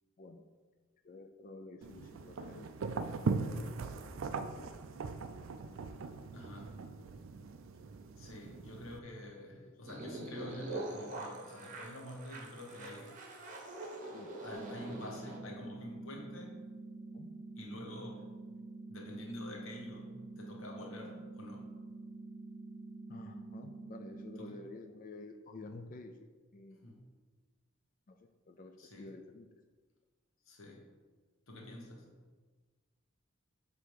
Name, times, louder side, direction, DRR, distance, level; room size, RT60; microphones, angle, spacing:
voice 1, 1.0-2.7 3.2-4.7 8.0-8.1 9.6-9.7 14.1-14.4 17.1-17.3 23.1-26.8 28.1-29.5, left 2 dB, 40° left, 5 dB, 0.4 m, -51 dB
sound 1, 1.8-9.0, right 4 dB, 65° right, 0.4 m, -40 dB
voice 2, 6.3-6.8 8.2-13.2 14.4-16.6 17.6-18.3 18.9-21.7 24.4-24.6 26.7-27.0 28.8-29.1 30.4-30.9 31.5-32.2, left 1 dB, 65° left, 0 dB, 1.2 m, -47 dB
sound 2, 9.9-15.4, right 1 dB, 35° right, 0.9 m, -44 dB
sound 3, 14.5-24.5, right 3 dB, 20° right, 1.3 m, -48 dB
6.8 x 3.4 x 4.7 m, 1.4 s
head